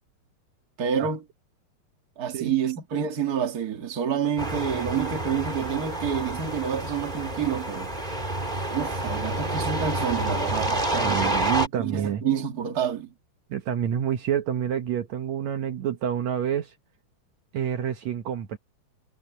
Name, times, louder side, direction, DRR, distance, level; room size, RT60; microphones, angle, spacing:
voice 1, 0.8-1.2 2.2-7.9 8.7-11.4 11.7-13.1, right 8 dB, 50° right, 1.1 m, -28 dB
sound 1, 4.4-11.7, right 1 dB, 15° right, 2.7 m, -28 dB
voice 2, 10.9-12.2 13.5-16.7 17.5-18.6, right 9 dB, 75° right, 1.6 m, -28 dB
omnidirectional pair, 4.7 m